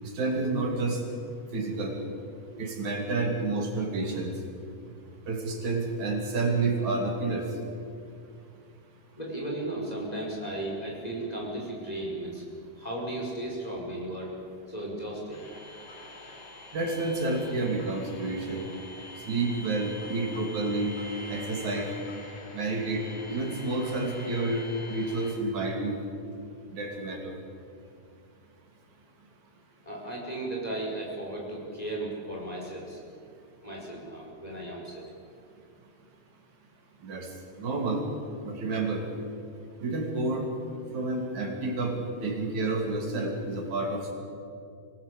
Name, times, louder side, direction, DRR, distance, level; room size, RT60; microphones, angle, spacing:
voice 1, 0.0-1.0 1.5-2.0 2.6-4.3 5.3-7.5 16.7-18.7 19.3-20.9 21.3-21.9 22.5-26.0 26.7-27.4 37.0-37.3 37.6-38.0 38.4-39.0 39.8-40.5 40.9-42.0 42.2-44.1, right 2 dB, 75° right, 2 dB, 4.2 m, -29 dB
voice 2, 9.2-12.5 12.7-14.3 14.7-15.5 29.8-33.0 33.6-35.1, right 1 dB, 10° left, -3 dB, 5.4 m, -35 dB
sound 1, 15.3-25.3, left 2 dB, 70° left, 4.8 m, -45 dB
25.0 x 18.0 x 8.4 m, 2.5 s
omnidirectional pair, 3.4 m